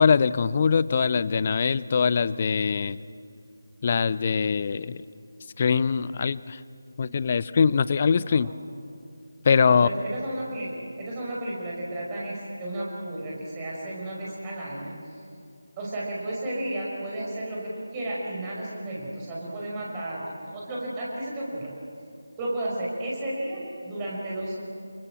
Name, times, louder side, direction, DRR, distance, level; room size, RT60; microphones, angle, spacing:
voice 1, 0.0-3.0 3.8-5.0 5.6-6.6 7.0-8.5 9.5-9.9, left 6 dB, 30° left, 17 dB, 0.5 m, -22 dB
voice 2, 8.3-8.8 9.7-14.9 15.8-20.2 20.5-21.7 22.4-24.6, right 1 dB, 15° right, -5 dB, 5.5 m, -33 dB
27.5 x 23.0 x 7.7 m, 2.4 s
figure-of-eight pair, 160°, 0 cm